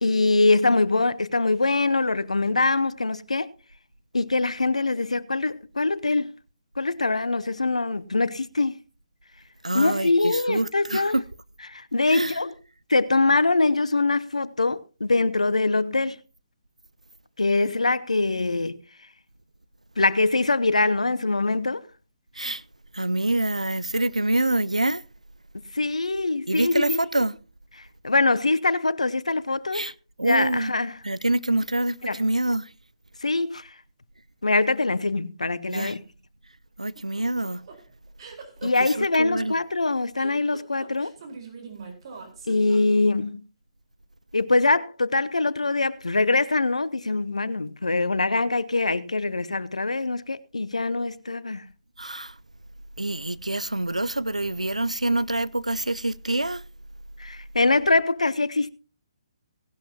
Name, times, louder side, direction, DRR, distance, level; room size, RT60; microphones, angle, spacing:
voice 1, 0.0-3.5 4.1-6.3 6.8-8.8 9.7-11.2 11.7-12.5 12.9-16.2 17.4-18.8 20.0-21.8 25.7-27.0 28.0-29.9 30.2-31.0 32.1-32.2 33.2-33.7 34.4-36.0 38.6-41.1 42.5-43.4 44.3-51.6 57.2-58.7, left 3 dB, 80° left, 0.8 m, -23 dB
voice 2, 9.6-11.2 12.1-12.4 22.4-22.6 22.9-25.0 26.5-27.4 29.7-29.9 30.2-30.7 31.0-32.7 35.7-36.0 36.8-37.6 38.6-39.5 52.0-52.3 53.0-56.6, right 2 dB, 90° right, 0.6 m, -26 dB
sound 1, 37.0-43.2, right 5 dB, 45° right, 4.4 m, -42 dB
18.0 x 11.5 x 2.9 m
figure-of-eight pair, 135°, 4 cm